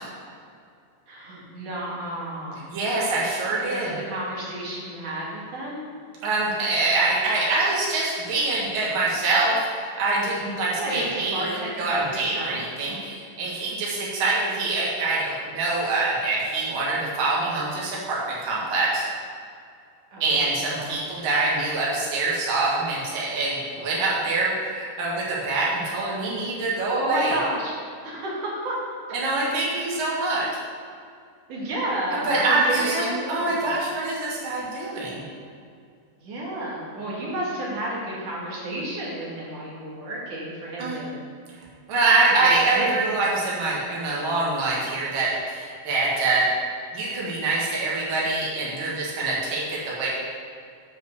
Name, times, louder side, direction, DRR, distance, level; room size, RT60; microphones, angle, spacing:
voice 1, 1.1-2.7 3.7-5.8 10.7-12.6 20.1-21.2 27.0-27.8 28.0-29.3 31.5-33.7 36.2-41.1 42.4-42.5 42.7-43.1, right 1 dB, 55° right, -5 dB, 2.8 m, -32 dB
voice 2, 2.7-3.9 6.2-19.0 20.2-27.4 29.1-30.5 32.1-35.2 40.8-41.0 41.9-46.5 46.9-50.1, right 3 dB, 70° right, -6 dB, 1.2 m, -25 dB
7.5 x 5.8 x 6.4 m, 2.3 s
omnidirectional pair, 5.2 m